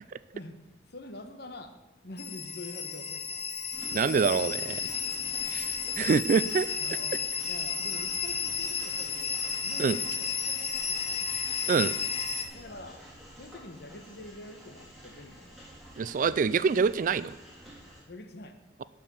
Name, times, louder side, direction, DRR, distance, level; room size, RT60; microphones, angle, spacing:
voice 1, 0.9-1.8 2.0-3.6 4.9-5.1 6.7-11.4 12.5-13.0 13.4-15.6 18.1-18.6, left 2 dB, 60° left, 8 dB, 1.1 m, -46 dB
sound 1, 2.2-12.5, left 6 dB, 35° left, 0.8 m, -32 dB
Train, 3.7-18.0, equal, ahead, 3.0 m, -49 dB
voice 2, 3.9-5.0 5.5-6.7 9.8-10.0 11.7-11.9 16.0-17.3, right 5 dB, 45° right, 17 dB, 0.3 m, -26 dB
12.0 x 5.0 x 7.3 m, 1.0 s
head